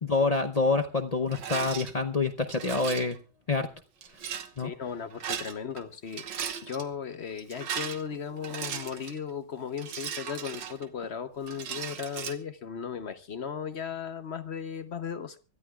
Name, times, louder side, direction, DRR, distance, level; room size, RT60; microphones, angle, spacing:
voice 1, 0.0-3.2 3.5-3.7 4.6-4.7, left 3 dB, 70° left, 0.3 m, -27 dB
Rattle, 1.3-1.9 2.5-3.2 4.0-4.5 5.1-5.8 6.1-6.8 7.4-9.2 9.8-11.1 11.5-12.3, right 8 dB, 85° right, 1.8 m, -37 dB
voice 2, 4.6-15.4, left 7 dB, 50° left, 0.9 m, -36 dB
24.5 x 13.5 x 2.3 m
omnidirectional pair, 1.9 m